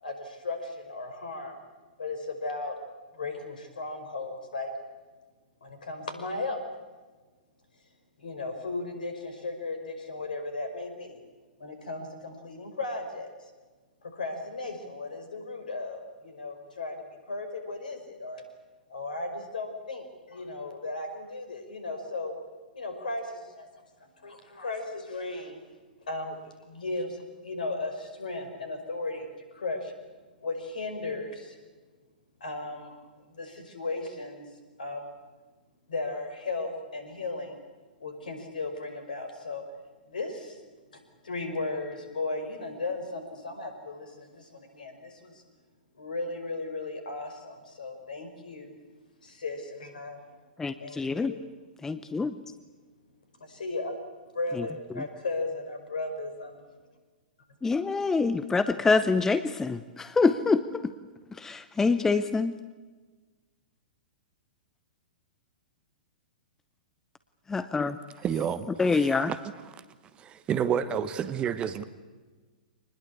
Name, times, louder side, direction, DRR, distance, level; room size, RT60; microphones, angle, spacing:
voice 1, 0.0-1.6 2.0-2.8 3.1-4.7 5.6-6.6 8.2-11.2 11.6-13.3 14.1-18.4 18.9-22.3 22.7-23.7 24.2-25.6 26.1-29.9 30.4-31.6 32.4-33.0 33.3-34.5 34.8-35.1 35.9-37.6 38.0-39.6 40.1-40.6 41.2-45.4 46.0-48.8 49.2-50.2 50.8-51.4 53.4-53.9 54.3-56.7, left 3 dB, 65° left, 7 dB, 5.3 m, -36 dB
voice 2, 50.6-51.3 51.8-52.4 54.5-54.7 54.9-55.0 57.6-60.9 61.3-62.6 67.5-68.0 68.8-69.3, left 4 dB, 10° left, 12 dB, 0.8 m, -26 dB
voice 3, 68.2-68.7 68.9-69.4 70.2-71.8, right 8 dB, 20° right, 13 dB, 1.1 m, -29 dB
25.5 x 20.0 x 8.4 m, 1.3 s
figure-of-eight pair, 105°, 5 cm